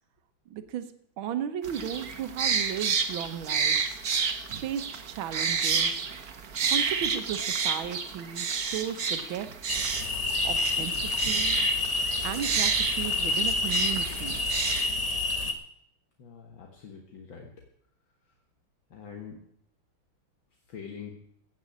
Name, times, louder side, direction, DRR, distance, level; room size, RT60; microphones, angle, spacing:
voice 1, 0.5-0.9 1.2-4.0 4.5-6.1 6.6-9.5 10.4-11.6 12.2-14.4, right 9 dB, 70° right, 10 dB, 1.7 m, -35 dB
sound 1, 1.6-14.9, right 6 dB, 50° right, 1.5 m, -30 dB
sound 2, 9.7-15.5, left 3 dB, 25° left, 0.9 m, -28 dB
voice 2, 16.2-17.5 18.9-19.4 20.7-21.1, left 6 dB, 65° left, 1 dB, 2.2 m, -44 dB
16.0 x 6.3 x 8.6 m, 0.69 s
omnidirectional pair, 2.3 m